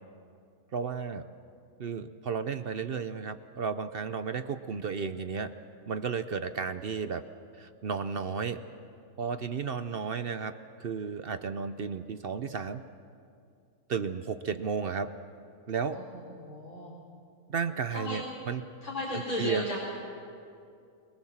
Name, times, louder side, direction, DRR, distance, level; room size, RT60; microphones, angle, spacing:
voice 1, 0.7-1.2 1.8-5.5 5.9-7.2 7.6-8.6 9.2-10.5 10.8-12.8 13.9-15.1 15.7-16.0 17.5-18.6 19.4-19.6, right 6 dB, 50° right, 10 dB, 0.8 m, -33 dB
voice 2, 16.0-16.9 17.9-18.2 18.8-19.8, left 1 dB, 85° left, -5 dB, 4.6 m, -35 dB
23.0 x 22.0 x 7.3 m, 2.5 s
omnidirectional pair, 1.5 m